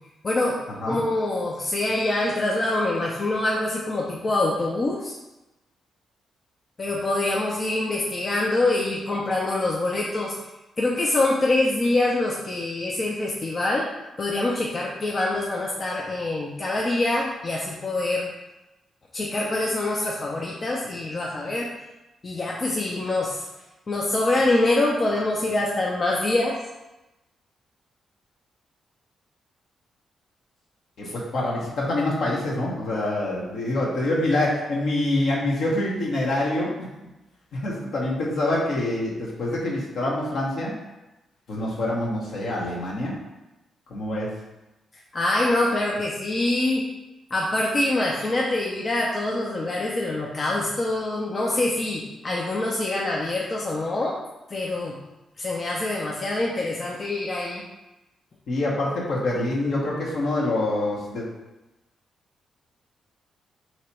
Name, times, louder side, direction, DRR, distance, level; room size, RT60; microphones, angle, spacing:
voice 1, 0.2-0.6 0.9-5.1 6.8-10.3 10.8-13.9 14.2-18.3 19.1-21.7 22.2-23.5 23.9-26.5 45.1-46.8 47.3-54.2 54.5-55.0 55.4-57.6, left 2 dB, 45° left, -3 dB, 0.6 m, -25 dB
voice 2, 31.0-36.9 37.5-40.7 41.5-43.1 43.9-44.3 58.5-61.3, left 1 dB, 65° left, -4 dB, 1.1 m, -26 dB
2.9 x 2.9 x 4.4 m, 1.0 s
hypercardioid pair, 40°, 0 cm